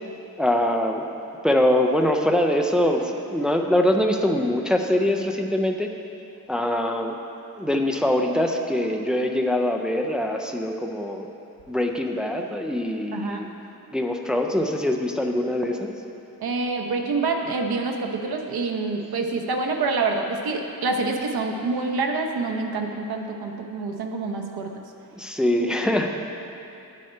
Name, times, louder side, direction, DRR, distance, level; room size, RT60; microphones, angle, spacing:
voice 1, 0.4-1.0 1.4-5.9 6.5-7.1 7.6-11.3 11.7-13.5 13.9-15.9 25.1-26.1, left 1 dB, ahead, 2 dB, 0.3 m, -23 dB
voice 2, 13.1-13.5 16.4-24.7 25.6-25.7, right 3 dB, 80° right, 3 dB, 0.9 m, -27 dB
9.9 x 6.4 x 4.4 m, 2.8 s
wide cardioid pair, 170°, 37 cm